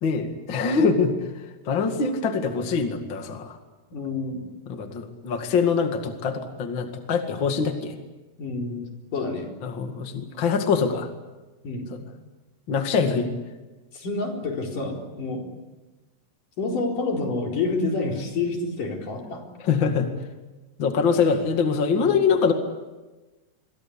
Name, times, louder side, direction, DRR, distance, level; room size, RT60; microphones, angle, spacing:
voice 1, 0.0-1.1 1.6-3.6 4.7-7.9 9.6-11.1 12.7-13.3 19.6-20.1 20.8-22.5, left 5 dB, 60° left, 5 dB, 1.2 m, -23 dB
voice 2, 3.9-4.5 8.4-8.8 9.1-9.5 11.6-11.9 13.9-15.4 16.6-19.5 21.9-22.1, left 3 dB, 45° left, 1 dB, 5.5 m, -28 dB
26.5 x 23.0 x 8.7 m, 1.1 s
omnidirectional pair, 5.7 m